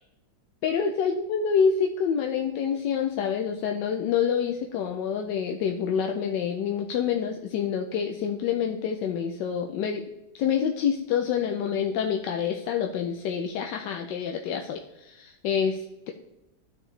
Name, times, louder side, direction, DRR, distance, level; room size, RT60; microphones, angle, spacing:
voice 1, 0.6-10.0 10.3-16.1, left 7 dB, 80° left, 3 dB, 1.3 m, -27 dB
13.0 x 4.6 x 3.2 m, 0.93 s
omnidirectional pair, 1.9 m